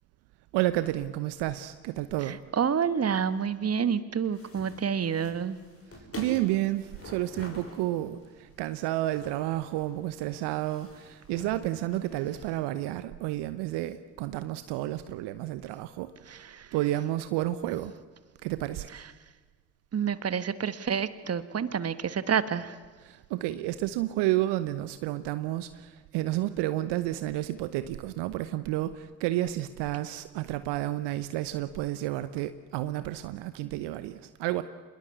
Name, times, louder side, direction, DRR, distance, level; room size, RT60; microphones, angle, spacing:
voice 1, 0.5-2.4 6.2-16.4 16.7-17.9 18.4-18.9 23.0-34.6, right 15 dB, 65° right, 13 dB, 1.0 m, -31 dB
voice 2, 2.5-5.6 16.5-16.7 19.9-22.7, right 7 dB, 35° right, 14 dB, 1.5 m, -28 dB
sound 1, 4.3-12.5, left 1 dB, 30° left, 6.7 m, -47 dB
27.0 x 20.5 x 8.2 m, 1.4 s
hypercardioid pair, 50°, 45 cm